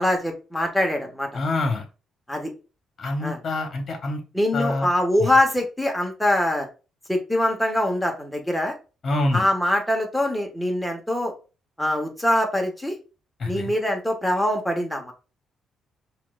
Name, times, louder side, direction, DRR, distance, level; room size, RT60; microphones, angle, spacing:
voice 1, 0.0-1.3 2.3-2.5 3.2-3.4 4.3-6.7 7.1-8.7 9.3-11.3 11.8-12.9 13.4-15.1, left 1 dB, 5° left, 2 dB, 1.0 m, -23 dB
voice 2, 1.3-1.8 3.0-4.2 4.5-4.9 5.2-5.3 9.0-9.5 13.4-13.7, left 2 dB, 45° left, 4 dB, 1.1 m, -26 dB
5.8 x 2.4 x 2.4 m, 0.33 s
cardioid pair, 90°, 0 cm